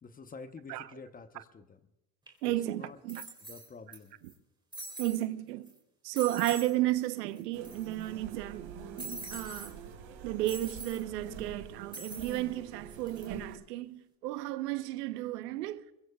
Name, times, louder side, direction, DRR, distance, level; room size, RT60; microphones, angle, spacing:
voice 1, 0.0-1.8 2.7-3.0 3.4-4.2, left 4 dB, 20° left, 0.9 m, -48 dB
sound 1, 2.3-2.4 3.1-4.0 4.3-4.4 4.7-5.2 5.7-5.8 6.2-6.7 7.0-7.1 7.4-8.1 9.0-9.7 10.5-11.0 11.9-12.4 12.9-13.3, right 2 dB, 10° right, 3.5 m, -44 dB
voice 2, 2.4-3.2 5.0-5.7 6.0-9.8 10.2-15.8, right 15 dB, 90° right, 1.1 m, -33 dB
sound 2, 7.5-13.6, right 6 dB, 60° right, 3.9 m, -46 dB
22.5 x 22.0 x 2.4 m
supercardioid pair, 120°, 46 cm